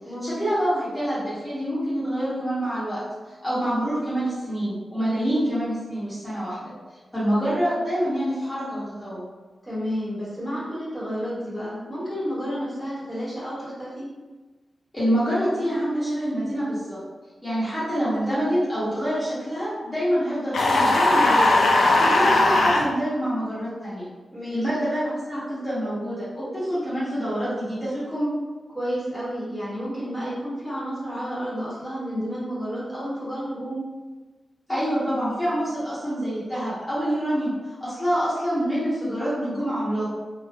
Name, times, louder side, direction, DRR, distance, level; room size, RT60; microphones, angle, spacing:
voice 1, 0.2-3.0 3.3-6.7 7.1-9.2 14.9-17.0 17.4-21.6 22.0-24.1 24.5-28.3 34.7-37.5 37.8-40.1, equal, 15° left, -12 dB, 1.0 m, -26 dB
voice 2, 5.0-5.4 9.7-14.1 24.3-24.7 28.7-33.8, equal, 5° right, -10 dB, 1.3 m, -31 dB
sound 1, 20.5-22.8, left 2 dB, 85° left, 0.3 m, -18 dB
3.3 x 2.2 x 2.3 m, 1.3 s
wide cardioid pair, 105°, 0 cm